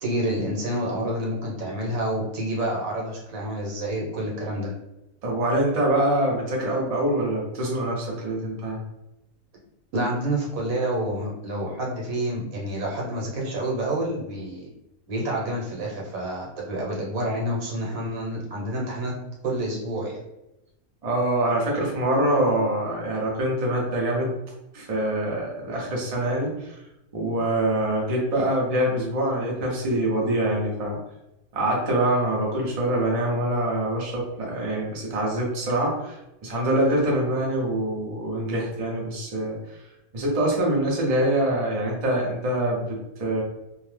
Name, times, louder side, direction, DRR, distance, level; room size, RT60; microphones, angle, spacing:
voice 1, 0.0-4.7 9.9-14.7 15.1-19.1 19.4-20.1, right 1 dB, 80° right, -2 dB, 1.3 m, -28 dB
voice 2, 5.2-8.8 21.0-24.4 24.7-26.8 27.1-31.0 31.5-39.8 40.1-43.4, right 1 dB, 35° right, -3 dB, 0.6 m, -25 dB
2.7 x 2.0 x 3.2 m, 0.92 s
omnidirectional pair, 1.5 m